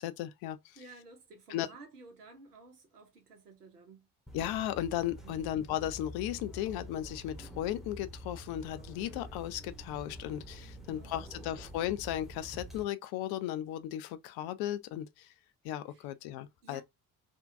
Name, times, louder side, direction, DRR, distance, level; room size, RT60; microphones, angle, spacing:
voice 1, 0.0-0.6 1.5-1.7 4.3-15.3 15.6-16.8, left 12 dB, 55° left, 0.5 m, -36 dB
voice 2, 0.7-4.1 5.2-5.5 10.7-11.8 15.9-16.1 16.6-16.8, right 3 dB, 85° right, 0.6 m, -54 dB
sound 1, 4.3-12.8, right 1 dB, ahead, 0.8 m, -47 dB
3.4 x 2.2 x 2.5 m
figure-of-eight pair, 40°, 46 cm